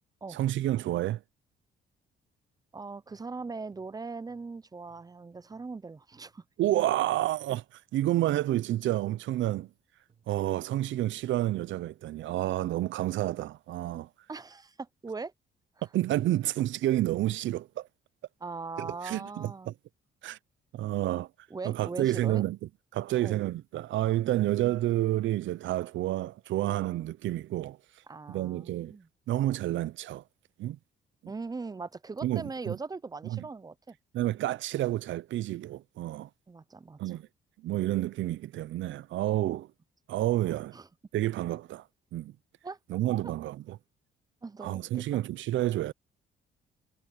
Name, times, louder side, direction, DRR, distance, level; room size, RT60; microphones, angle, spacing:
voice 1, 0.3-1.2 6.6-9.7 10.3-14.1 15.9-17.9 18.8-19.7 20.2-20.4 20.7-21.3 21.6-22.6 22.9-27.8 28.3-28.9 29.3-30.2 30.6-30.8 31.2-31.3 32.2-32.8 33.3-33.4 34.1-36.3 37.0-37.3 37.6-39.7 40.1-40.8 41.1-41.8 42.1-42.3 42.9-43.8 44.6-45.9, right 14 dB, 75° right, 0.6 m, -29 dB
voice 2, 2.7-6.4 14.3-15.3 18.4-19.7 21.5-22.4 23.2-23.4 28.1-29.1 31.3-34.0 36.5-37.2 40.7-40.9 42.6-43.0 44.4-45.2, right 4 dB, 20° right, 0.6 m, -40 dB
sound 1, 3.1-7.1 7.9-9.5 10.1-11.6, right 6 dB, 35° right, 2.8 m, -68 dB
cardioid pair, 90°, 20 cm